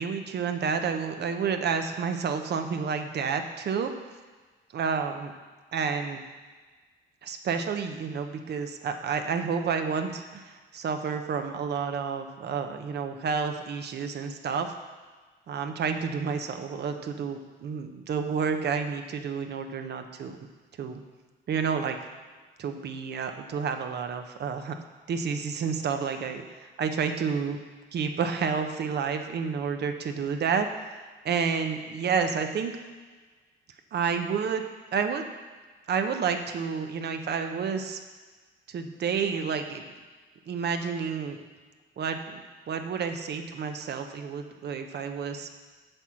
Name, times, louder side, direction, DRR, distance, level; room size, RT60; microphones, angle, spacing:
voice 1, 0.0-3.9 4.7-5.3 5.7-6.2 7.2-14.7 15.5-20.4 20.8-21.0 21.5-22.0 22.6-24.8 25.1-27.6 27.9-30.7 31.2-32.8 33.9-34.6 34.9-35.3 35.9-38.0 38.7-39.8 40.5-41.4 42.0-45.5, right 6 dB, 55° right, 6 dB, 0.8 m, -30 dB
7.7 x 4.4 x 6.2 m, 1.4 s
cardioid pair, 90°, 20 cm